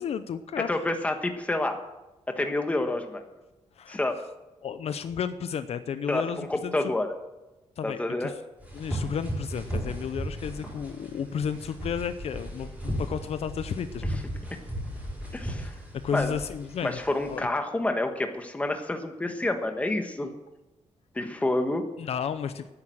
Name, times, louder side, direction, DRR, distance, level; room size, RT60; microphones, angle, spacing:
voice 1, 0.0-0.7 3.8-4.0 4.6-6.7 7.8-8.4 8.7-14.2 15.9-17.0 17.3-17.5 22.0-22.7, left 7 dB, 60° left, 11 dB, 0.6 m, -32 dB
voice 2, 0.6-1.8 2.3-3.2 3.9-4.2 6.1-7.1 7.8-8.3 15.3-15.7 16.1-16.3 16.8-20.3 21.1-21.8, left 2 dB, 10° left, 5 dB, 1.3 m, -28 dB
sound 1, 8.6-17.4, right 1 dB, 10° right, 5.8 m, -36 dB
12.5 x 9.8 x 7.5 m, 1.0 s
wide cardioid pair, 175°, 12 cm